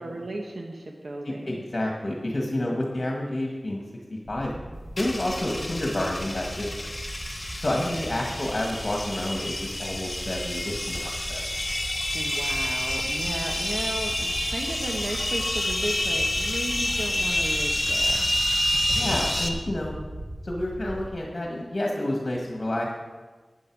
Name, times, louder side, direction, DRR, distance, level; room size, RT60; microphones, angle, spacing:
voice 1, 0.0-1.6 7.8-8.1 12.1-18.2, right 2 dB, 75° right, 1 dB, 1.4 m, -35 dB
voice 2, 1.2-3.8 4.1-4.5 5.0-6.7 7.6-11.4 18.9-19.9 20.4-22.9, left 1 dB, 50° left, -1 dB, 1.8 m, -29 dB
sound 1, 4.2-21.1, right 1 dB, 25° right, 1.3 m, -39 dB
sound 2, 5.0-19.5, left 1 dB, 30° left, 1.2 m, -28 dB
13.5 x 9.5 x 4.8 m, 1.3 s
wide cardioid pair, 65°, 0 cm